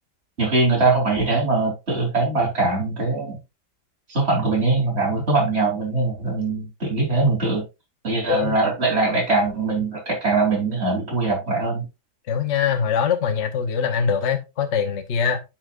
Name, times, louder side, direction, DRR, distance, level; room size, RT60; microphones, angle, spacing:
voice 1, 0.4-3.4 4.1-7.6 8.0-11.9, right 3 dB, 35° right, 4.1 m, -22 dB
voice 2, 12.3-15.4, left 7 dB, 50° left, 1.1 m, -23 dB
9.6 x 5.9 x 2.5 m
omnidirectional pair, 1.8 m